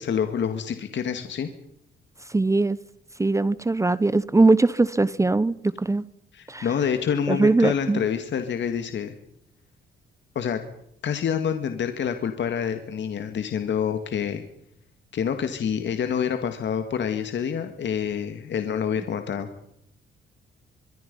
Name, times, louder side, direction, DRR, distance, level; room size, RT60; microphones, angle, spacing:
voice 1, 0.0-1.5 6.3-9.1 10.4-10.6 11.0-14.4 15.1-19.5, left 7 dB, 60° left, 2.0 m, -27 dB
voice 2, 2.3-2.8 3.2-6.1 6.5-6.7 7.3-8.0, right 3 dB, 15° right, 0.8 m, -21 dB
25.0 x 23.0 x 5.5 m
cardioid pair, 95°, 21 cm